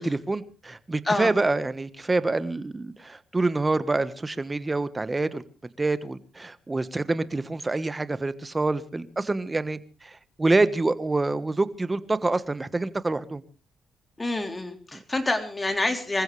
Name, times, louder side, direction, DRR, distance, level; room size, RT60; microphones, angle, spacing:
voice 1, 0.0-5.4 5.8-13.4, right 2 dB, 20° right, 14 dB, 1.3 m, -26 dB
voice 2, 14.2-16.2, left 2 dB, 20° left, 6 dB, 3.4 m, -27 dB
26.0 x 15.0 x 3.3 m, 0.34 s
cardioid pair, 90°, 0 cm